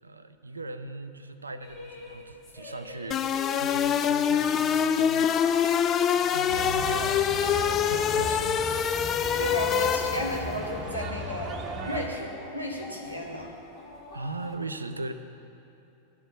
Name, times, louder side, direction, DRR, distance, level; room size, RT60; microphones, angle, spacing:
voice 1, 0.0-5.6 6.1-8.6 14.1-15.1, right 2 dB, 80° right, 10 dB, 0.4 m, -39 dB
sound 1, 1.6-14.5, left 2 dB, 45° left, 1.6 m, -44 dB
sound 2, 3.1-10.5, left 8 dB, 30° left, 0.3 m, -25 dB
sound 3, 6.5-12.1, right 1 dB, 30° right, 0.9 m, -37 dB
voice 2, 9.4-11.5 11.8-13.5, equal, 90° left, -1 dB, 1.1 m, -33 dB
12.0 x 4.6 x 6.4 m, 2.8 s
figure-of-eight pair, 90°, 0 cm